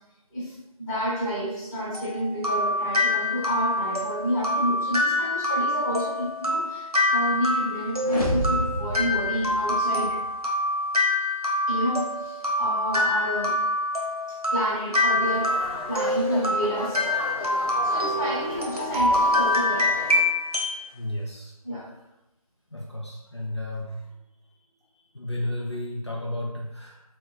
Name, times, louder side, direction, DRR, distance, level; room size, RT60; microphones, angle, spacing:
voice 1, 0.3-10.2 11.7-13.6 14.3-17.1 17.8-20.0 21.6-21.9, equal, 5° left, -19 dB, 0.9 m, -30 dB
sound 1, 1.9-20.8, left 1 dB, 80° right, 1.0 m, -25 dB
sound 2, 8.0-10.2, equal, 80° left, 0.8 m, -30 dB
sound 3, 15.2-20.2, equal, 35° left, 0.9 m, -36 dB
voice 2, 20.9-21.5 22.7-24.1 25.1-27.0, left 1 dB, 50° left, -3 dB, 0.4 m, -32 dB
3.4 x 2.2 x 3.3 m, 0.97 s
figure-of-eight pair, 165°, 19 cm